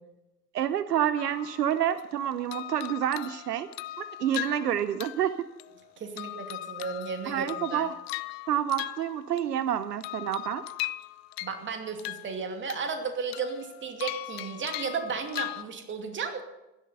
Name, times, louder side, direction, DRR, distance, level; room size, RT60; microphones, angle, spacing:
voice 1, 0.5-3.7 4.0-5.3 7.3-7.9 8.5-10.6, right 10 dB, 75° right, 14 dB, 0.8 m, -28 dB
sound 1, 1.2-2.1 2.5-5.8 6.2-9.6 10.0-11.7 12.0-13.0 13.3-15.6, left 18 dB, 40° left, 0.6 m, -39 dB
voice 2, 6.0-7.9 11.4-16.4, right 5 dB, 25° right, 5 dB, 2.5 m, -34 dB
16.0 x 12.0 x 5.6 m, 0.97 s
figure-of-eight pair, 90°, 49 cm